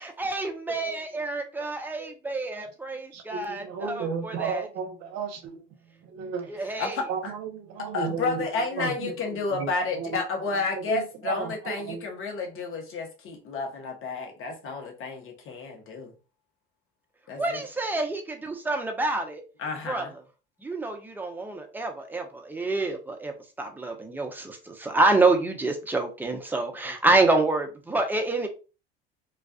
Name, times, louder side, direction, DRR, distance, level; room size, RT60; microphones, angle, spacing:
voice 1, 0.0-4.7 6.5-7.0 17.4-19.4 19.8-20.1 20.6-28.5, right 2 dB, 5° right, 0.5 m, -27 dB
voice 2, 3.1-5.6 6.0-6.6 7.1-8.5 8.8-9.7 10.0-10.2 10.5-12.0, right 6 dB, 55° right, 0.7 m, -34 dB
voice 3, 6.8-7.3 7.9-16.1 17.3-17.6 19.6-20.1, left 4 dB, 45° left, 0.9 m, -31 dB
2.4 x 2.3 x 2.2 m
hypercardioid pair, 70°, 30 cm